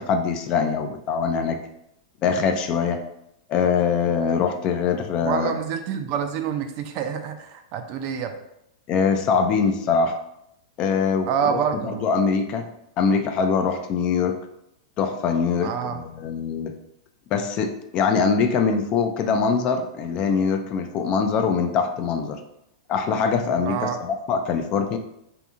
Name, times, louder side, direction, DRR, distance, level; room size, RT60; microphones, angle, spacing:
voice 1, 0.0-1.6 2.2-3.0 3.5-5.5 8.9-10.1 10.8-12.7 13.0-14.4 15.0-16.8 17.3-22.4 22.9-25.0, left 5 dB, 35° left, 6 dB, 0.3 m, -23 dB
voice 2, 5.2-8.4 11.3-12.1 15.6-16.0 23.6-24.0, right 7 dB, 45° right, 7 dB, 0.3 m, -27 dB
2.7 x 2.6 x 2.4 m, 0.80 s
hypercardioid pair, 105°, 3 cm